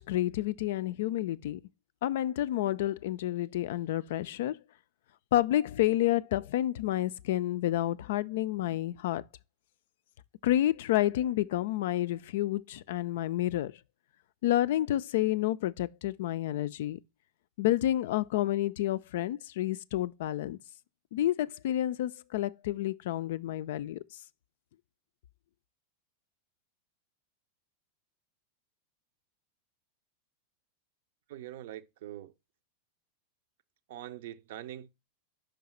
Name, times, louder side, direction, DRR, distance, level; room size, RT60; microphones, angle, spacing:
voice 1, 0.0-1.6 2.0-4.6 5.3-9.2 10.4-13.7 14.4-17.0 17.6-20.6 21.1-24.0, left 13 dB, 55° left, 0.3 m, -29 dB
voice 2, 31.3-32.3 33.9-34.9, right 13 dB, 55° right, 0.5 m, -43 dB
5.4 x 5.2 x 4.3 m
figure-of-eight pair, 90°, 0 cm